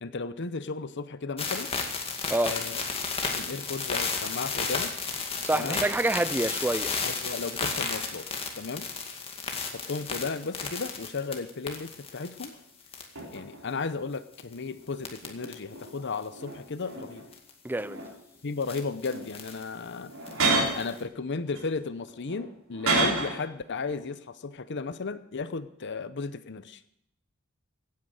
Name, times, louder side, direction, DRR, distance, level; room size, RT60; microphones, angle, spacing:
voice 1, 0.0-1.7 2.5-2.8 3.3-4.9 5.5-5.8 7.0-8.3 8.6-9.2 9.7-12.5 13.3-17.2 18.4-20.1 20.8-26.8, left 4 dB, 55° left, 0.8 m, -34 dB
sound 1, 1.4-12.5 12.9-13.3 14.3-14.5 15.0-15.5 15.8-15.9 17.3-17.5 18.6-19.6 20.3-21.0, left 4 dB, 25° left, 2.1 m, -33 dB
voice 2, 5.4-7.0 17.6-18.1, right 1 dB, 10° right, 0.4 m, -27 dB
sound 2, 12.5-12.6 13.2-13.7 14.4-16.0 16.3-17.3 17.7-18.4 19.0-19.3 20.0-20.9 21.6-23.5 23.7-24.0, right 3 dB, 70° right, 4.5 m, -31 dB
16.5 x 9.6 x 6.4 m
head